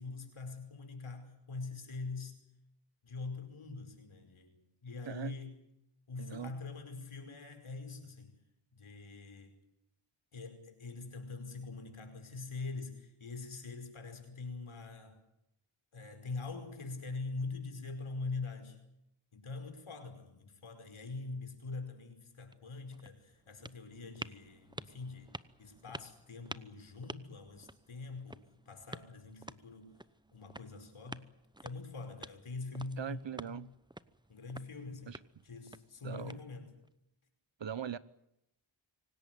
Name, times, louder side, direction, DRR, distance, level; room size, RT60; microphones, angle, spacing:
voice 1, 0.0-2.4 3.0-4.5 4.8-5.5 6.1-8.4 8.7-9.6 10.3-15.2 15.9-18.8 19.3-29.9 30.3-31.3 31.6-33.7 34.3-35.1 35.4-36.7, left 3 dB, 75° left, 5.3 m, -44 dB
voice 2, 5.1-5.4 6.2-6.5 33.0-33.7 35.1-35.2 36.0-36.4 37.6-38.0, right 8 dB, 60° right, 1.2 m, -40 dB
sound 1, 22.3-36.9, right 1 dB, 10° right, 0.9 m, -51 dB
25.5 x 18.0 x 9.4 m
cardioid pair, 60°, 49 cm